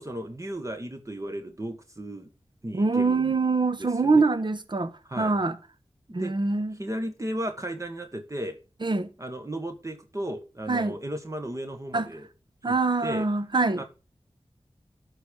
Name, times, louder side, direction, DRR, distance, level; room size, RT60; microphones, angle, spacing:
voice 1, 0.0-2.3 2.6-3.3 3.8-4.2 5.0-5.3 6.1-6.3 6.7-8.6 9.2-12.3 12.6-12.7 13.0-13.3 13.8-13.9, right 1 dB, 30° right, 1.5 m, -35 dB
voice 2, 2.7-4.9 5.2-5.6 6.1-6.8 8.8-9.1 10.7-10.9 11.9-12.1 12.6-13.8, right 3 dB, 45° right, 1.1 m, -24 dB
11.5 x 5.0 x 6.4 m
wide cardioid pair, 60°, 11 cm